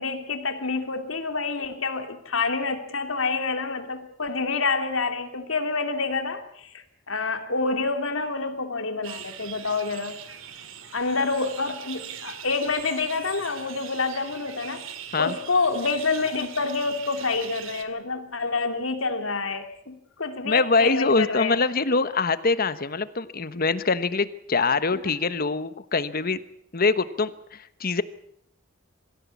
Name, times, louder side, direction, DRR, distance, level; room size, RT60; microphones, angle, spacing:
voice 1, 0.0-10.2 10.9-14.8 15.2-21.6 24.9-25.0, left 4 dB, 80° left, 7 dB, 2.8 m, -27 dB
sound 1, 9.0-17.8, right 9 dB, 85° right, 2.3 m, -41 dB
voice 2, 20.4-26.4 26.7-28.0, left 4 dB, 50° left, 14 dB, 1.2 m, -24 dB
24.0 x 15.5 x 8.4 m, 0.73 s
head